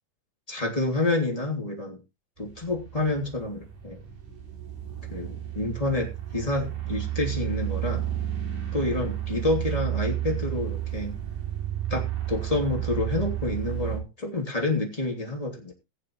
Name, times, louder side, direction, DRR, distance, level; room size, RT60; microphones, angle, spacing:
voice 1, 0.5-2.0 2.4-4.0 5.1-8.1 8.7-11.2 11.9-15.7, left 2 dB, 10° left, -1 dB, 2.6 m, -28 dB
sound 1, 2.4-14.0, right 12 dB, 65° right, 4.4 m, -32 dB
21.0 x 7.6 x 3.1 m, 0.26 s
omnidirectional pair, 4.1 m